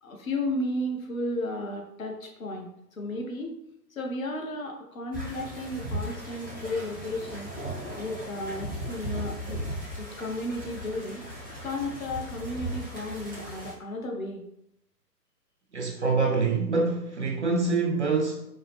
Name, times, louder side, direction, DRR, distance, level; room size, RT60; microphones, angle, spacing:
voice 1, 0.0-3.5 3.9-7.5 7.9-9.6 10.0-11.2 11.6-14.4, left 1 dB, 55° left, 1 dB, 0.9 m, -33 dB
sound 1, 5.1-13.7, equal, 15° left, 0.5 m, -37 dB
voice 2, 15.7-18.4, right 4 dB, 45° right, 0 dB, 0.5 m, -25 dB
4.6 x 2.1 x 3.3 m, 0.79 s
figure-of-eight pair, 130°, 49 cm